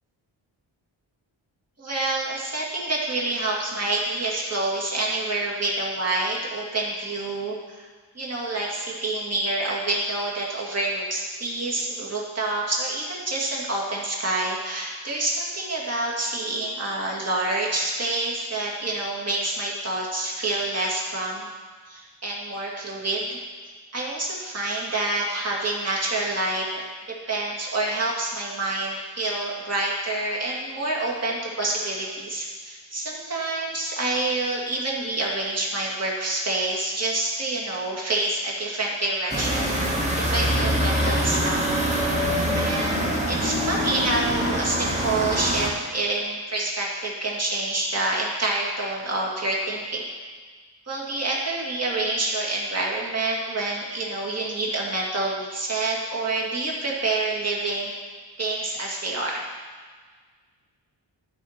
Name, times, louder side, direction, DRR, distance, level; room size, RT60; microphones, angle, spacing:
voice 1, 1.8-7.9 8.1-21.5 21.9-23.4 23.9-26.8 27.3-39.7 40.2-41.8 42.6-50.1 50.9-57.9 58.4-59.4, right 2 dB, 35° right, -4 dB, 2.2 m, -27 dB
sound 1, 39.3-45.7, equal, 15° right, 1.5 m, -24 dB
12.5 x 4.4 x 5.8 m, 1.5 s
cardioid pair, 90°, 46 cm